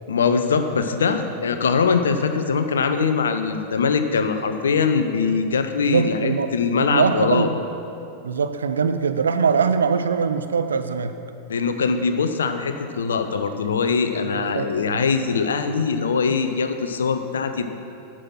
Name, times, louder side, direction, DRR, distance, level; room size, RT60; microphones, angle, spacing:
voice 1, 0.1-7.5 11.5-17.6, left 5 dB, 65° left, 8 dB, 0.6 m, -22 dB
voice 2, 5.8-6.5 6.8-7.5 8.2-11.2 14.3-15.0, right 5 dB, 70° right, 10 dB, 0.5 m, -22 dB
9.9 x 6.2 x 5.9 m, 2.7 s
figure-of-eight pair, 90°, 0 cm